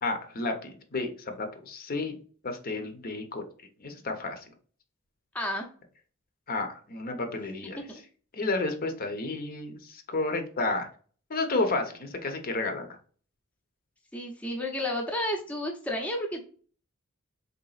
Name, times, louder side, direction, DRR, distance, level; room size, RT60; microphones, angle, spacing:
voice 1, 0.0-2.2 2.4-3.4 3.8-4.4 6.5-7.8 8.3-10.9 11.3-12.9, left 2 dB, 45° left, 6 dB, 0.7 m, -31 dB
voice 2, 5.3-5.7 7.9-8.0 14.1-16.4, left 1 dB, 5° left, 0 dB, 0.6 m, -31 dB
3.9 x 3.6 x 2.4 m, 0.42 s
head